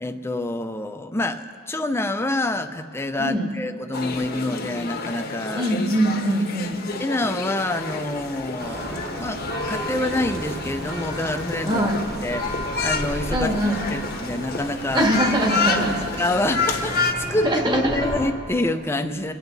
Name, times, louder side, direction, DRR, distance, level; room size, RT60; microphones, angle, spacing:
voice 1, 0.0-5.7 7.0-11.8 12.2-13.5 13.9-15.0 15.8-19.3, left 2 dB, 10° left, 7 dB, 0.6 m, -27 dB
sound 1, 3.9-17.1, left 4 dB, 50° left, 1.1 m, -30 dB
voice 2, 5.5-6.9 11.6-12.0 13.3-13.8 14.9-16.1 17.4-18.0, right 1 dB, 25° right, 2 dB, 1.5 m, -22 dB
Church bell, 8.6-18.3, equal, 50° right, 2.9 m, -33 dB
27.0 x 9.0 x 4.1 m, 2.3 s
head